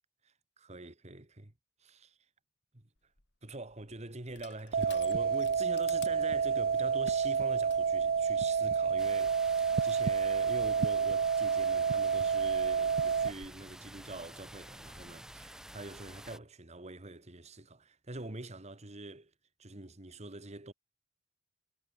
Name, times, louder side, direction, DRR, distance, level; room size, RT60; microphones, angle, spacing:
voice 1, 0.6-1.5 1.8-2.2 2.7-2.9 3.4-19.3 19.6-20.7, right 2 dB, 35° right, 1.8 m, -45 dB
Crushing, 3.0-7.8, left 12 dB, 60° left, 3.2 m, -55 dB
sound 1, 4.7-13.3, right 6 dB, 50° right, 0.4 m, -29 dB
sound 2, 9.0-16.4, right 1 dB, 5° right, 1.2 m, -50 dB
head